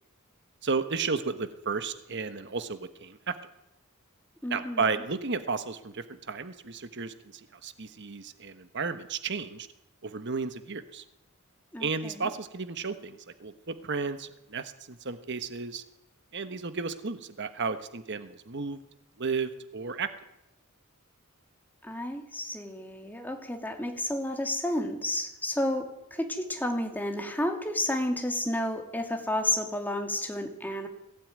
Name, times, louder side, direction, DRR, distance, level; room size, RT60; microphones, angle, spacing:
voice 1, 0.6-3.4 4.5-7.1 7.6-9.7 10.0-11.0 11.8-15.8 16.3-18.8 19.2-20.1, right 4 dB, 55° right, 10 dB, 1.2 m, -33 dB
voice 2, 4.4-5.0 11.7-12.3 21.8-30.9, left 1 dB, 10° left, 4 dB, 2.5 m, -31 dB
21.0 x 16.0 x 9.5 m, 0.87 s
head